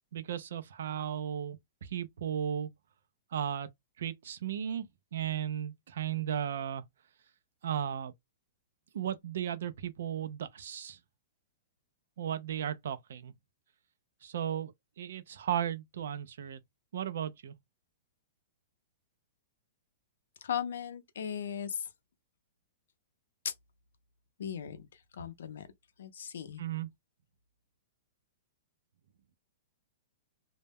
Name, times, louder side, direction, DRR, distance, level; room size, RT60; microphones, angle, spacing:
voice 1, 0.1-2.7 3.3-3.7 4.0-4.9 5.1-6.8 7.6-8.1 8.9-11.0 12.2-13.3 14.2-14.7 15.0-16.6 16.9-17.5 26.6-26.9, right 9 dB, 65° right, 0.4 m, -35 dB
voice 2, 20.4-21.9 23.4-23.5 24.4-24.9 25.1-25.7 26.0-26.6, left 8 dB, 75° left, 0.5 m, -37 dB
2.1 x 2.0 x 3.3 m
hypercardioid pair, 180°, 0 cm